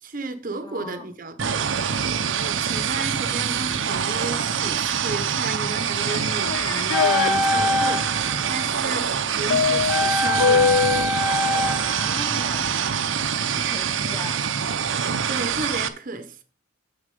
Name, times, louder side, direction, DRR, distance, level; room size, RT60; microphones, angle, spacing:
voice 1, 0.0-1.7 2.1-10.9 13.5-13.8 15.0-16.4, right 3 dB, 45° right, 0.8 m, -33 dB
voice 2, 0.6-1.0 12.0-12.7 13.5-14.4, left 1 dB, 20° left, 1.2 m, -37 dB
sound 1, 1.4-15.9, right 7 dB, 75° right, 0.7 m, -25 dB
sound 2, 6.0-7.3 9.5-11.1, left 6 dB, 80° left, 0.4 m, -22 dB
sound 3, 6.9-9.0 9.9-13.0 13.3-13.4, left 2 dB, ahead, 0.4 m, -25 dB
7.2 x 6.5 x 5.3 m
head